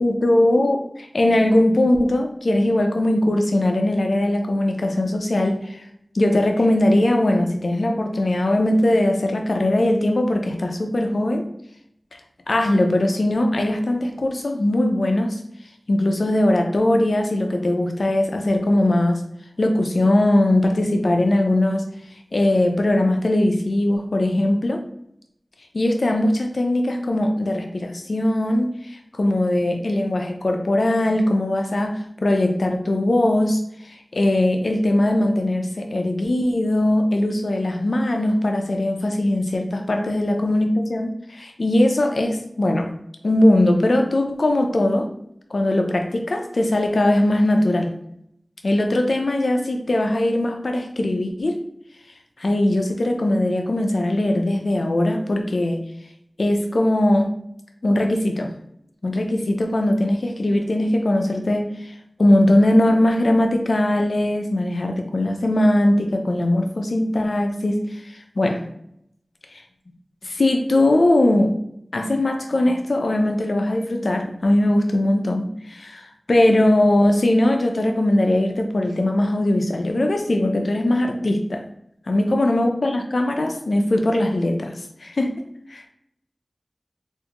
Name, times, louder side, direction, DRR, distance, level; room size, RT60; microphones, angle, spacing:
voice 1, 0.0-5.8 6.1-11.4 12.5-15.4 15.9-19.2 19.6-21.8 22.3-24.8 25.7-28.7 29.2-33.6 34.1-42.9 43.2-45.1 45.5-47.9 48.6-51.5 52.4-55.8 56.4-57.3 57.8-58.5 59.0-61.7 62.2-67.8 68.4-68.6 70.2-71.6 71.9-76.0 76.3-81.6 82.1-85.3, left 1 dB, 85° left, 4 dB, 0.5 m, -20 dB
3.5 x 2.6 x 2.9 m, 0.73 s
wide cardioid pair, 40°, 0 cm